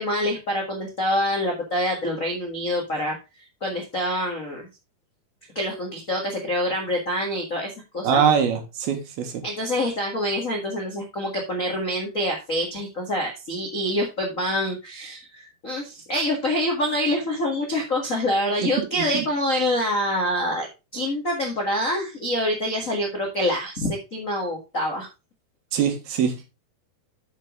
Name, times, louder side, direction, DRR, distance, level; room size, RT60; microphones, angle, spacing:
voice 1, 0.0-4.7 5.5-8.2 9.4-20.7 20.9-25.1, left 1 dB, 60° left, 0 dB, 0.8 m, -26 dB
voice 2, 8.0-9.4 18.8-19.3 25.7-26.4, right 8 dB, 70° right, 5 dB, 3.3 m, -23 dB
8.3 x 7.4 x 3.6 m, 0.27 s
omnidirectional pair, 4.7 m